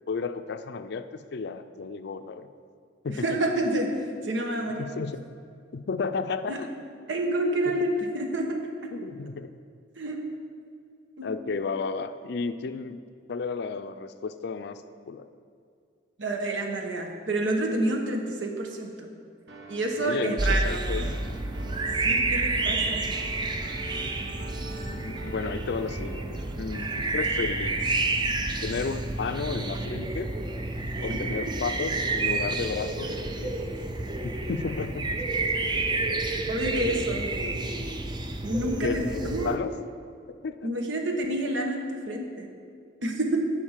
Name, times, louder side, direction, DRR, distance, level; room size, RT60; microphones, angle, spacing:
voice 1, 0.1-2.5 3.0-3.4 4.8-5.2 5.7-6.7 7.7-7.9 8.9-9.5 11.2-13.0 13.3-15.3 20.0-21.2 24.9-27.8 28.6-30.3 31.0-33.6 34.2-35.1 38.8-39.7 40.3-40.7, left 4 dB, 65° left, 11 dB, 0.4 m, -33 dB
voice 2, 3.2-3.9 4.2-4.9 6.5-6.6 7.1-8.9 10.0-10.2 11.2-11.3 16.2-19.1 19.7-20.8 22.0-23.0 31.1-31.2 36.5-37.3 38.4-39.5 40.6-42.5 43.0-43.4, right 1 dB, 85° right, 2 dB, 1.1 m, -28 dB
sound 1, 19.5-27.7, right 2 dB, 65° right, 1.2 m, -45 dB
sound 2, 20.4-39.6, right 2 dB, 25° right, 0.5 m, -29 dB
10.0 x 4.3 x 7.2 m, 2.3 s
head